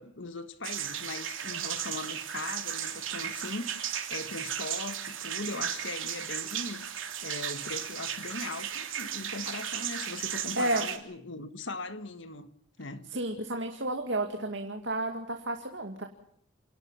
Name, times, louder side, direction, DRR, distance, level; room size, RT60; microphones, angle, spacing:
voice 1, 0.0-12.5 12.8-13.1, left 2 dB, 70° left, 1.7 m, -40 dB
sound 1, 0.6-11.0, right 9 dB, 80° right, 3.1 m, -35 dB
voice 2, 10.5-10.9 13.1-16.0, right 1 dB, 65° right, 2.4 m, -31 dB
28.5 x 18.0 x 5.8 m
head